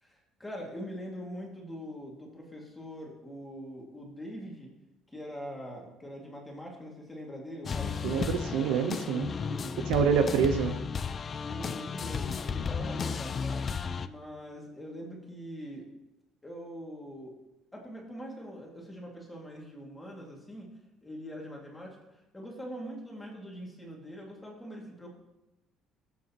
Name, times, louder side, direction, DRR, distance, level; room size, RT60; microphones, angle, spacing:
voice 1, 0.0-4.7 5.1-8.3 9.1-9.8 10.3-10.6 11.3-13.7 14.0-15.9 16.4-17.3 17.7-20.7 21.0-22.0 22.3-25.2, equal, 10° left, -2 dB, 2.2 m, -43 dB
sound 1, 7.7-14.1, left 6 dB, 30° left, 0.3 m, -34 dB
voice 2, 8.0-9.3 9.9-10.7, right 6 dB, 90° right, 8 dB, 0.8 m, -26 dB
17.5 x 7.7 x 3.0 m, 0.98 s
cardioid pair, 150°, 0 cm